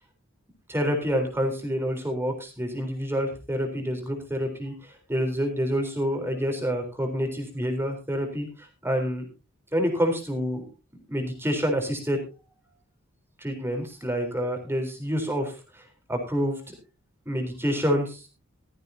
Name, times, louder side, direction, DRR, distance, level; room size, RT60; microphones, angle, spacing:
voice 1, 0.7-4.7 5.1-8.5 8.8-9.2 9.7-10.6 11.1-12.2 13.4-15.5 16.1-16.6 17.3-18.2, equal, 10° right, 3 dB, 3.8 m, -27 dB
15.0 x 14.5 x 2.8 m, 0.30 s
head